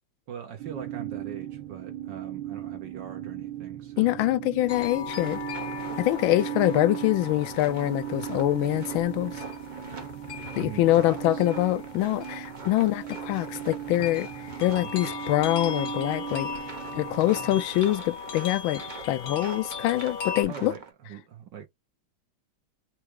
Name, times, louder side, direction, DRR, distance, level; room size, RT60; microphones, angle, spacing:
voice 1, 0.3-4.1 10.6-11.5 14.0-14.1 14.8-15.1 20.5-21.7, right 8 dB, 65° right, 1.5 m, -42 dB
sound 1, 0.6-17.7, right 13 dB, 80° right, 1.4 m, -38 dB
voice 2, 4.0-5.4 6.0-9.4 10.6-14.3 14.6-16.5 16.9-20.7, left 15 dB, 75° left, 1.4 m, -25 dB
sound 2, 4.7-20.4, left 7 dB, 55° left, 1.2 m, -39 dB
sound 3, 5.1-20.9, right 4 dB, 40° right, 0.6 m, -44 dB
4.5 x 2.4 x 4.6 m
omnidirectional pair, 2.3 m